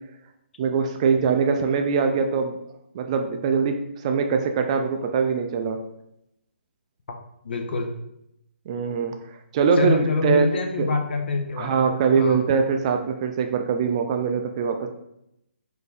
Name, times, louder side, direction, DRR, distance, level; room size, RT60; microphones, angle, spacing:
voice 1, 0.6-2.6 2.9-5.8 8.7-9.2 9.5-10.9 11.6-14.9, right 5 dB, 30° right, 5 dB, 0.3 m, -22 dB
voice 2, 7.4-7.9 9.8-12.4, left 3 dB, 55° left, 3 dB, 0.7 m, -26 dB
4.2 x 2.7 x 3.4 m, 0.80 s
figure-of-eight pair, 145°, 7 cm